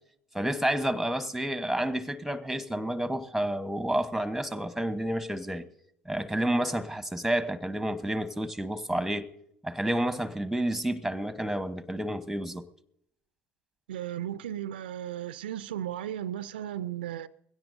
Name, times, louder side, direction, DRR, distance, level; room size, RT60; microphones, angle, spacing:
voice 1, 0.3-5.6 6.0-9.3 9.6-12.6, right 1 dB, ahead, 1.2 m, -30 dB
voice 2, 13.9-17.3, right 11 dB, 75° right, 0.5 m, -35 dB
21.5 x 16.5 x 2.7 m
figure-of-eight pair, 65°, 5 cm